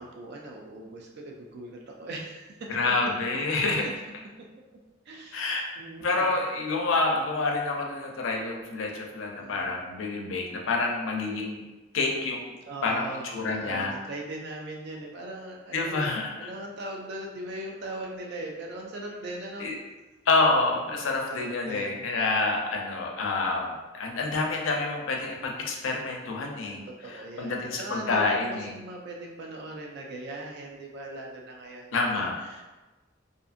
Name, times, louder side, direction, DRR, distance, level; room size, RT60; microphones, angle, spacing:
voice 1, 0.0-3.0 3.3-3.4 3.8-3.9 5.1-5.5 5.8-6.4 9.3-9.9 12.7-19.7 20.8-22.0 22.5-23.0 26.4-32.6, right 1 dB, 60° right, 0 dB, 0.3 m, -40 dB
voice 2, 2.7-3.9 5.3-5.6 6.0-11.6 11.9-12.4 12.8-13.9 15.7-16.5 19.6-19.7 20.3-26.8 27.4-28.7 31.9-32.3, left 3 dB, 85° left, 1 dB, 0.5 m, -28 dB
2.6 x 2.5 x 2.4 m, 1.2 s
head